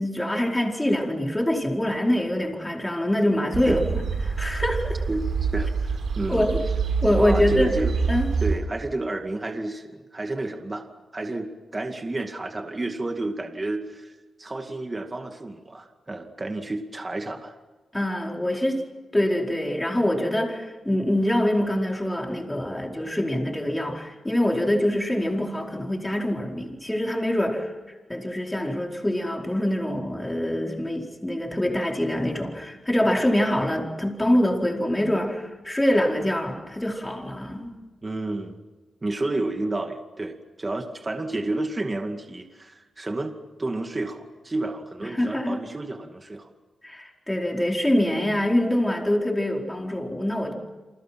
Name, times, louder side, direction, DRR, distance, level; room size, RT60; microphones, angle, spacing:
voice 1, 0.0-5.0 6.3-6.6 7.0-7.7 8.1-8.3 17.9-18.8 19.1-27.7 28.1-37.7 45.0-45.6 46.8-50.5, left 1 dB, 10° left, 1 dB, 4.6 m, -25 dB
sound 1, 3.5-8.6, right 5 dB, 75° right, 5.0 m, -26 dB
voice 2, 5.1-6.5 7.1-7.9 8.4-10.8 11.1-14.1 14.4-17.5 38.0-38.6 39.0-46.5, right 2 dB, 25° right, 5 dB, 2.2 m, -31 dB
29.5 x 27.5 x 6.0 m, 1.3 s
wide cardioid pair, 125°, 0 cm